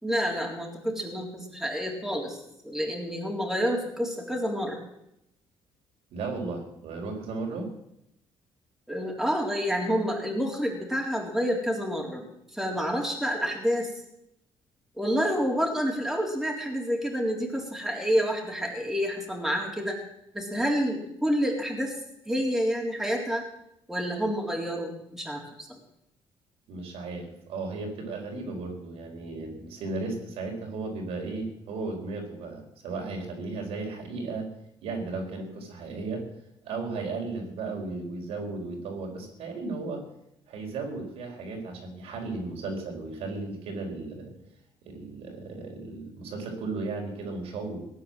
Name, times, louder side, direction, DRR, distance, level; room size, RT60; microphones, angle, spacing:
voice 1, 0.0-2.4 2.6-4.8 8.9-13.9 15.0-20.0 20.3-22.0 22.3-23.4 23.9-25.8, equal, 5° right, -1 dB, 3.8 m, -28 dB
voice 2, 6.1-7.7 26.7-34.5 34.8-36.2 36.6-40.0 40.5-44.3 44.8-47.8, right 3 dB, 80° right, 1 dB, 4.6 m, -35 dB
17.5 x 9.3 x 7.7 m, 0.80 s
cardioid pair, 115°, 10 cm